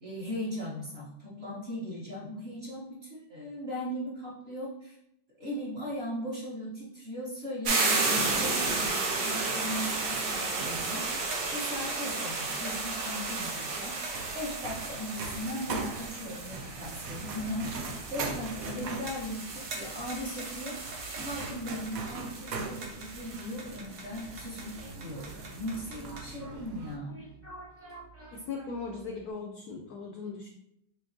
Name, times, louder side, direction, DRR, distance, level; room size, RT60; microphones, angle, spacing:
voice 1, 0.0-5.0 5.4-14.0 14.3-17.8 18.1-20.8 21.2-27.2, equal, 40° right, -6 dB, 1.0 m, -38 dB
sound 1, 7.6-26.3, right 3 dB, 60° right, 1.2 m, -34 dB
sound 2, 9.7-27.0, right 3 dB, 80° right, 0.7 m, -42 dB
sound 3, 24.2-29.3, right 2 dB, 15° right, 0.4 m, -50 dB
voice 2, 28.3-30.5, left 4 dB, 80° left, 2 dB, 0.8 m, -38 dB
5.9 x 3.0 x 2.6 m, 0.79 s
omnidirectional pair, 2.2 m